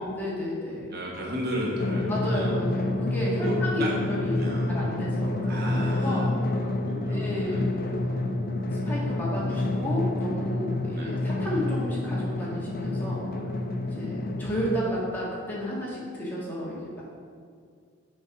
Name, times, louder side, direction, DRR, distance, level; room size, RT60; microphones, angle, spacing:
voice 1, 0.0-0.9 2.1-4.4 4.7-6.7 7.1-8.2 8.8-13.2 13.8-17.0, equal, 10° left, -6 dB, 1.6 m, -32 dB
voice 2, 0.9-2.5 3.4-3.9 4.3-5.0 5.4-6.4 6.6-7.7 10.9-11.1, equal, 45° right, -3 dB, 1.3 m, -34 dB
Drum, 1.8-14.8, left 2 dB, 40° left, 0.5 m, -28 dB
6.9 x 4.6 x 5.8 m, 2.1 s
head